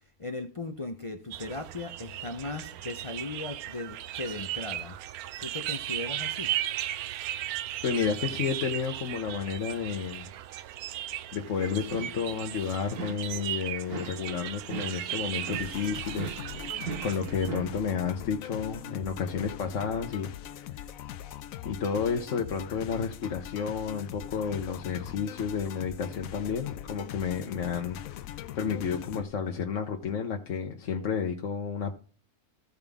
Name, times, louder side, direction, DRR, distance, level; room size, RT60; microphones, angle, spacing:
voice 1, 0.2-4.9 5.4-6.5, left 3 dB, 40° left, 7 dB, 0.4 m, -37 dB
sound 1, 1.3-17.5, right 12 dB, 90° right, 1.1 m, -36 dB
voice 2, 7.8-10.3 11.3-20.3 20.7-20.8 21.6-31.9, left 6 dB, 60° left, 3 dB, 1.2 m, -31 dB
sound 2, 11.9-12.4 12.9-13.5 13.9-17.8, right 4 dB, 45° right, 1.3 m, -39 dB
sound 3, 15.5-29.2, left 11 dB, 75° left, 1.0 m, -41 dB
15.5 x 5.3 x 3.5 m, 0.39 s
omnidirectional pair, 1.5 m